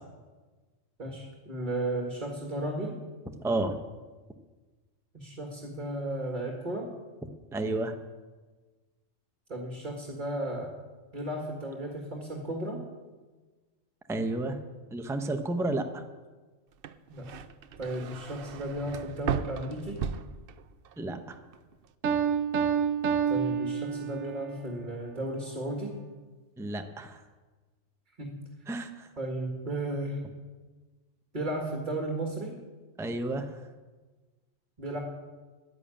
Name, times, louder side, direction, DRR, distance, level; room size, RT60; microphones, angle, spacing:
voice 1, 1.0-2.9 5.1-6.9 9.5-10.7 11.1-12.8 17.1-17.3 17.8-20.0 23.3-25.9 28.2-28.3 29.2-30.2 31.3-32.5 34.8-35.0, right 1 dB, 35° right, 1 dB, 2.1 m, -34 dB
voice 2, 3.4-3.8 7.5-8.0 14.1-14.6 14.9-16.0 21.0-21.4 26.6-27.2 28.7-29.1 33.0-33.6, right 2 dB, 5° right, 6 dB, 0.8 m, -31 dB
sound 1, 16.7-21.0 21.3-21.9, right 7 dB, 60° right, 0.7 m, -36 dB
Piano, 22.0-24.5, right 7 dB, 85° right, 1.3 m, -28 dB
11.5 x 10.5 x 8.8 m, 1.3 s
omnidirectional pair, 1.3 m